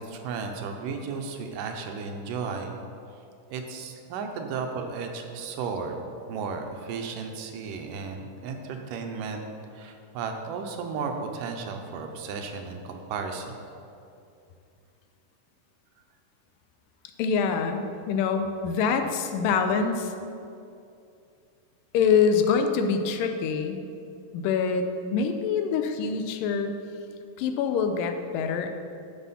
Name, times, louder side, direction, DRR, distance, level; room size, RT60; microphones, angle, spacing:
voice 1, 0.0-2.7 3.5-9.5 9.7-13.6, right 5 dB, 80° right, 4 dB, 2.4 m, -34 dB
voice 2, 17.2-20.1 21.9-23.8 24.3-26.8 27.4-28.7, left 6 dB, 85° left, 6 dB, 2.3 m, -25 dB
9.8 x 7.0 x 5.6 m, 2.5 s
omnidirectional pair, 3.9 m